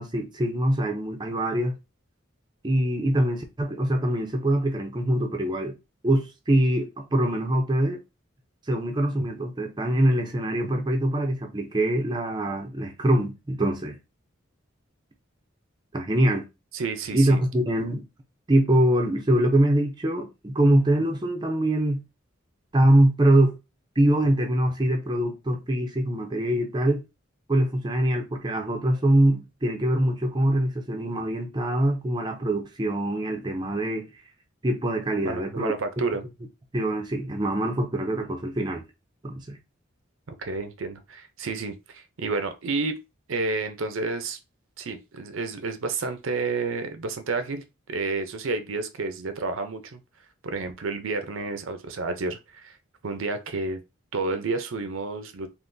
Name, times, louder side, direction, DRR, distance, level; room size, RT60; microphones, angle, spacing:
voice 1, 0.0-1.8 2.6-5.8 6.0-8.0 8.7-14.0 15.9-16.4 17.1-18.0 18.5-22.0 22.7-23.6 24.0-27.0 27.5-34.1 34.6-35.7 36.7-38.8 39.2-39.6, right 1 dB, 20° right, 0.5 m, -23 dB
voice 2, 16.7-17.4 35.2-36.2 40.3-43.0 43.3-44.4 44.8-50.0 50.4-52.8 53.0-53.8 54.1-55.5, right 3 dB, 80° right, 0.6 m, -30 dB
3.7 x 2.5 x 2.6 m
head